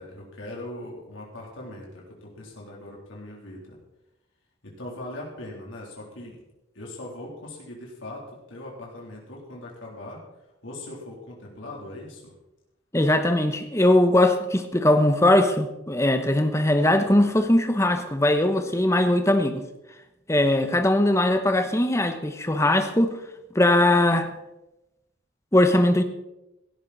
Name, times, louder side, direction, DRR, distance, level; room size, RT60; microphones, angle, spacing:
voice 1, 0.0-3.8 4.6-6.4 6.7-10.2 10.6-12.3, left 1 dB, 85° left, -2 dB, 3.5 m, -40 dB
voice 2, 12.9-19.6 20.3-23.2 23.5-24.3 25.5-26.0, left 1 dB, 15° left, 7 dB, 1.1 m, -20 dB
16.5 x 13.0 x 4.2 m, 0.92 s
head